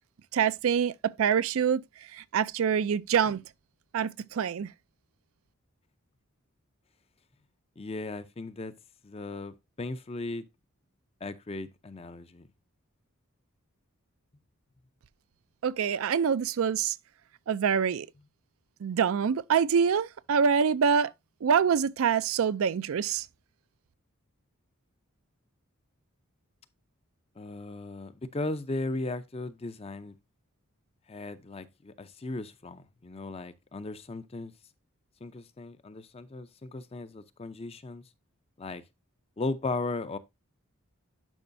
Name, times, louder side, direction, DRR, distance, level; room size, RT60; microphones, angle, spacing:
voice 1, 0.3-3.4 3.9-4.7 15.6-17.0 17.5-18.1 18.8-21.1 21.4-23.3, right 7 dB, 70° right, 0.4 m, -26 dB
voice 2, 7.8-8.7 9.0-10.4 11.2-12.5 27.4-30.2 31.1-34.5 35.2-38.0 38.6-38.8 39.4-40.2, left 2 dB, 25° left, 0.5 m, -36 dB
11.0 x 5.4 x 2.6 m
head